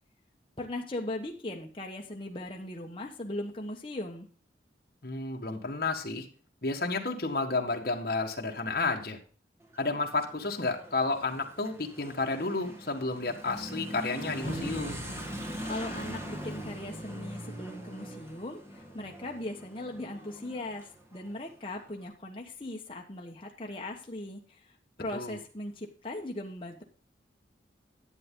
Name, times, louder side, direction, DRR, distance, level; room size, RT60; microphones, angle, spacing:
voice 1, 0.6-4.3 15.4-24.7 25.0-26.8, left 1 dB, 30° left, 0 dB, 1.2 m, -39 dB
voice 2, 5.0-6.3 6.6-9.2 9.8-15.0 25.1-25.4, left 3 dB, 50° left, 1 dB, 1.5 m, -31 dB
Motorcycle / Accelerating revving vroom, 9.6-21.9, right 1 dB, 15° right, 1.3 m, -42 dB
sound 1, 14.4-18.4, equal, 50° right, 4.1 m, -44 dB
11.0 x 8.4 x 3.7 m, 0.40 s
head